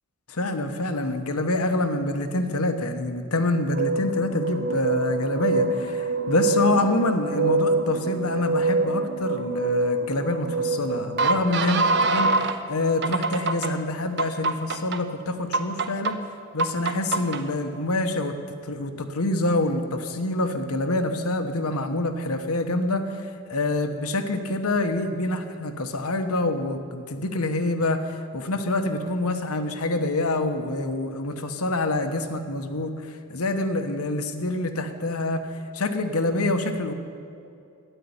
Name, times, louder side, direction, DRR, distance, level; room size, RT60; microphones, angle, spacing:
voice 1, 0.3-16.2 16.5-18.3 18.6-35.4 35.7-36.9, left 2 dB, 80° left, 7 dB, 1.2 m, -26 dB
sound 1, 3.5-12.6 13.0-13.7 14.2-15.0 15.5-16.1 16.6-17.4, right 3 dB, 50° right, 0.8 m, -25 dB
12.5 x 10.0 x 9.7 m, 2.6 s
head